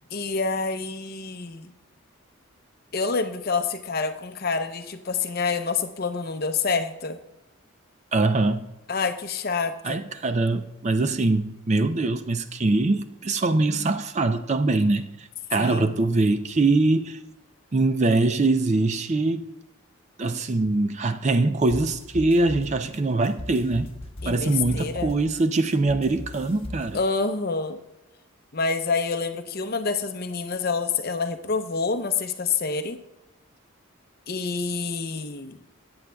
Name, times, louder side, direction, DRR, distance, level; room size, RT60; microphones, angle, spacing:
voice 1, 0.1-1.7 2.9-7.2 8.9-10.0 15.5-15.9 24.2-25.1 26.9-27.8 28.5-33.0 34.3-35.6, left 4 dB, 45° left, 8 dB, 0.6 m, -27 dB
voice 2, 8.1-8.7 9.8-17.2 17.7-19.5 20.2-23.9 24.3-27.0, right 2 dB, 30° right, 10 dB, 0.4 m, -23 dB
sound 1, 21.7-27.0, left 1 dB, 25° left, 1.1 m, -39 dB
14.0 x 8.7 x 2.3 m, 0.98 s
head